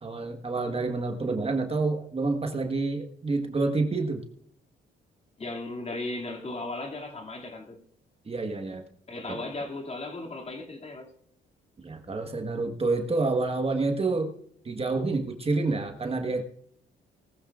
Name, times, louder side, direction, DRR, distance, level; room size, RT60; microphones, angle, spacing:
voice 1, 0.0-4.2 8.3-8.8 9.3-9.4 11.8-14.3 14.6-16.4, right 3 dB, 30° right, 1.4 m, -28 dB
voice 2, 5.4-7.8 9.1-11.1, left 2 dB, 30° left, 2.5 m, -36 dB
19.0 x 13.0 x 2.5 m
cardioid pair, 90°, 20 cm